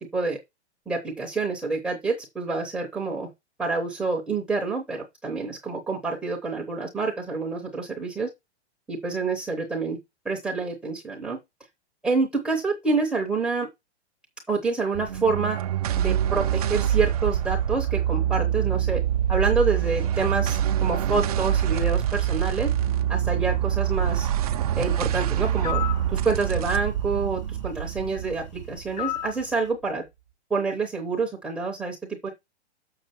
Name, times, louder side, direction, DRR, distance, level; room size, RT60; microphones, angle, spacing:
voice 1, 0.9-3.3 3.6-8.3 8.9-10.0 10.2-11.4 12.0-13.7 14.5-15.6 16.0-19.0 19.3-22.7 23.1-24.3 24.7-25.8 26.1-30.0 30.5-32.0 32.2-32.3, right 4 dB, ahead, 0.8 m, -27 dB
sound 1, 14.9-29.5, right 10 dB, 35° right, 0.7 m, -25 dB
sound 2, 25.6-26.0 29.0-29.4, left 13 dB, 40° left, 0.4 m, -30 dB
7.0 x 6.6 x 4.3 m
hypercardioid pair, 175°, 34 cm